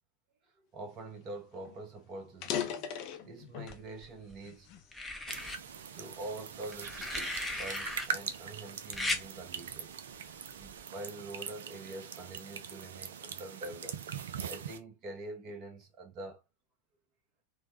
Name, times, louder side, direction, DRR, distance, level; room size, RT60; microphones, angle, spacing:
voice 1, 0.7-2.9 3.2-4.7 5.9-10.0 10.5-14.0 14.4-16.4, right 2 dB, 35° right, 1.0 m, -45 dB
sound 1, 1.2-1.3 1.6-1.8 2.3-3.9 4.4-5.7 6.3-6.5 7.2-9.2, left 9 dB, 40° left, 0.5 m, -39 dB
sound 2, 3.7-4.3 4.9-5.6 6.7-8.1 8.9-9.2 10.6-10.8, left 2 dB, 5° left, 0.7 m, -36 dB
sound 3, 5.3-14.8, right 7 dB, 60° right, 0.4 m, -42 dB
3.3 x 2.2 x 2.9 m
figure-of-eight pair, 90°, 0 cm